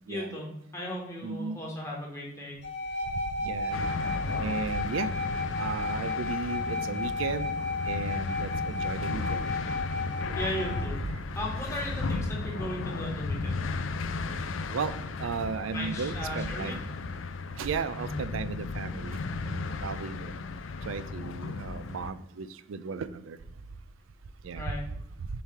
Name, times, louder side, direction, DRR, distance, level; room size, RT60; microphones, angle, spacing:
voice 1, 0.1-2.6 10.3-13.8 15.7-16.7 17.9-18.2 24.5-24.8, equal, 15° left, -2 dB, 1.6 m, -37 dB
voice 2, 1.2-1.6 3.4-3.8 4.4-5.1 5.6-7.6 7.9-9.5 11.1-11.2 14.7-14.9 15.2-16.8 17.6-19.2 19.4-20.3 20.9-23.4 24.4-24.6, right 5 dB, 85° right, 14 dB, 0.4 m, -35 dB
sound 1, 2.6-10.9, left 3 dB, 60° left, 2.0 m, -33 dB
sound 2, 3.7-22.1, left 3 dB, 85° left, 0.5 m, -35 dB
6.9 x 3.2 x 5.6 m, 0.76 s
head